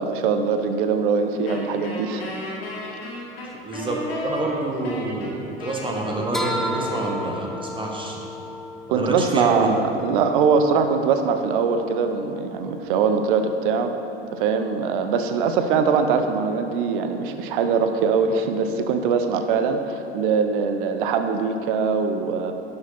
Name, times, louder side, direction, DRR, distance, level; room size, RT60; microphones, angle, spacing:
voice 1, 0.0-2.2 8.9-13.9 14.3-22.5, right 5 dB, 55° right, 7 dB, 0.8 m, -22 dB
Wind instrument woodwind instrument, 1.5-7.8, left 1 dB, 70° left, 2.0 m, -35 dB
voice 2, 3.6-4.0 4.2-5.3 5.6-8.2 8.9-9.7, right 2 dB, 15° right, -1 dB, 1.6 m, -27 dB
sound 1, 6.3-12.9, left 1 dB, ahead, 0.5 m, -34 dB
11.0 x 6.7 x 4.2 m, 2.8 s
figure-of-eight pair, 80°, 31 cm